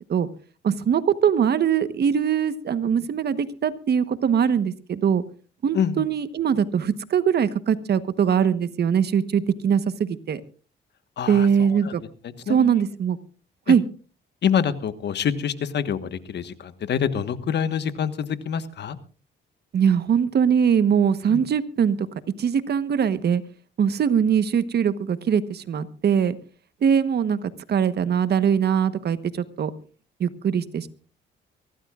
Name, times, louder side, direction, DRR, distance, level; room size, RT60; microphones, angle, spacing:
voice 1, 0.6-5.2 5.6-10.4 11.3-12.0 12.5-13.2 13.7-13.8 19.7-22.0 22.4-23.4 23.8-26.4 26.8-29.7 30.2-30.9, right 7 dB, 55° right, 13 dB, 1.2 m, -22 dB
voice 2, 5.7-6.0 11.2-11.9 12.2-12.8 13.7-13.8 14.4-19.0 21.3-21.4, left 8 dB, 60° left, 11 dB, 1.4 m, -26 dB
24.0 x 17.0 x 2.5 m, 0.37 s
cardioid pair, 90°, 20 cm